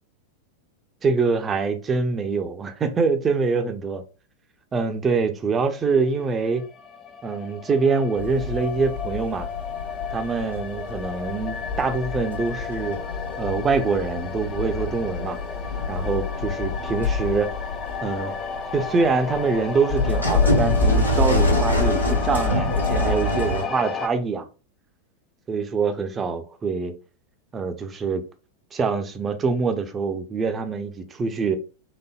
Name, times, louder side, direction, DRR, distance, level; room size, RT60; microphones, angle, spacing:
voice 1, 1.0-4.0 4.7-6.6 7.2-9.5 10.1-13.0 13.4-15.4 15.9-17.5 18.0-18.3 18.7-24.5 25.5-26.9 27.5-28.2 28.7-31.6, right 4 dB, 20° right, 0.6 m, -24 dB
sound 1, 6.0-24.1, left 5 dB, 25° left, 0.5 m, -33 dB
sound 2, 8.2-23.6, left 2 dB, 85° left, 1.0 m, -26 dB
4.1 x 3.3 x 2.3 m
figure-of-eight pair, 90°, 0 cm